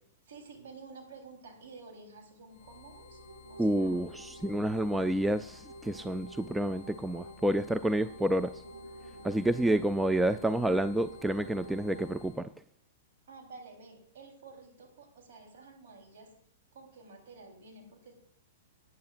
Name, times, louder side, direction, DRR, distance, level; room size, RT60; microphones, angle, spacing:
voice 1, 0.3-3.2 3.5-4.0 13.3-16.3 16.7-18.1, right 4 dB, 55° right, 1 dB, 3.7 m, -51 dB
sound 1, 2.5-12.5, left 8 dB, 35° left, 1.3 m, -55 dB
sound 2, 2.7-12.2, right 1 dB, 80° right, 4.9 m, -50 dB
voice 2, 3.6-8.5 9.2-12.5, right 1 dB, 5° right, 12 dB, 0.3 m, -29 dB
18.0 x 9.5 x 2.5 m, 0.66 s
figure-of-eight pair, 105°, 0 cm